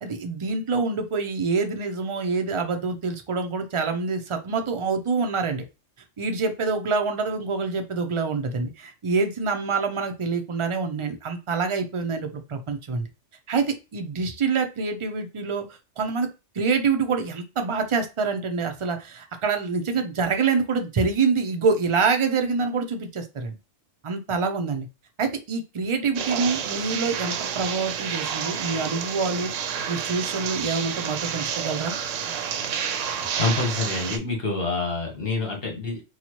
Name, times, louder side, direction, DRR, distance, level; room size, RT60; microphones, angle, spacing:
voice 1, 0.0-5.7 6.2-13.1 13.5-15.6 16.0-16.3 16.6-23.6 24.0-24.9 25.2-29.5 29.9-31.9, right 4 dB, 40° right, 5 dB, 0.4 m, -26 dB
sound 1, 26.2-34.2, right 8 dB, 80° right, 0.9 m, -30 dB
voice 2, 32.7-36.0, left 3 dB, 50° left, 1 dB, 1.3 m, -28 dB
4.2 x 2.4 x 2.9 m, 0.28 s
omnidirectional pair, 1.3 m